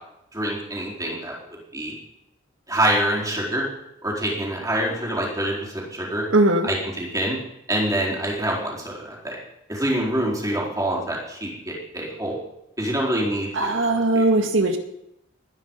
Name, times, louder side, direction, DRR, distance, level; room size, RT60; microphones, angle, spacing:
voice 1, 0.3-1.4 1.7-1.9 2.7-3.7 4.0-6.2 6.6-7.4 7.7-9.4 9.7-12.4 12.8-14.2, right 1 dB, 15° right, -3 dB, 4.3 m, -26 dB
voice 2, 6.3-6.7 13.5-14.8, right 2 dB, 75° right, 5 dB, 2.0 m, -19 dB
20.5 x 10.0 x 5.5 m, 0.85 s
head